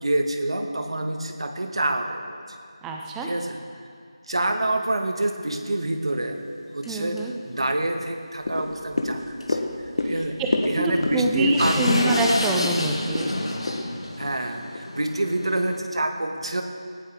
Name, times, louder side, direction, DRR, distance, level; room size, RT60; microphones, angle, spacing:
voice 1, 0.0-2.4 3.2-3.6 4.3-6.4 6.7-9.6 10.0-10.4 10.7-12.0 14.2-16.6, right 2 dB, 65° right, 5 dB, 1.7 m, -27 dB
voice 2, 2.8-3.3 6.8-7.3 10.0-10.5 10.7-13.3, right 2 dB, 5° right, 1 dB, 0.5 m, -26 dB
sound 1, 5.5-5.6 6.0-6.1 6.8-6.9 7.2-7.3 7.5-7.7 9.4-9.5 9.8-9.9 10.4-15.8, left 1 dB, 90° left, 2.3 m, -28 dB
sound 2, 8.4-14.9 15.3-15.4, left 2 dB, 45° left, 1.4 m, -30 dB
18.0 x 16.0 x 3.7 m, 2.2 s
figure-of-eight pair, 175°, 3 cm